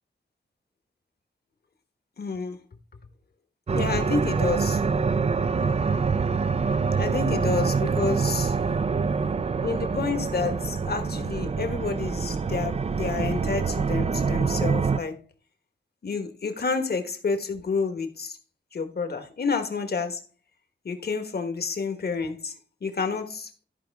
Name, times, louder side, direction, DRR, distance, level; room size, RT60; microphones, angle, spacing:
voice 1, 2.2-2.6 3.7-4.8 6.9-8.6 9.6-15.2 16.0-18.4 18.7-20.2 20.8-22.5 22.8-23.5, left 4 dB, 55° left, 1.3 m, -29 dB
sound 1, 3.7-15.0, right 5 dB, 35° right, 0.4 m, -25 dB
13.5 x 5.0 x 3.5 m
wide cardioid pair, 110°, 20 cm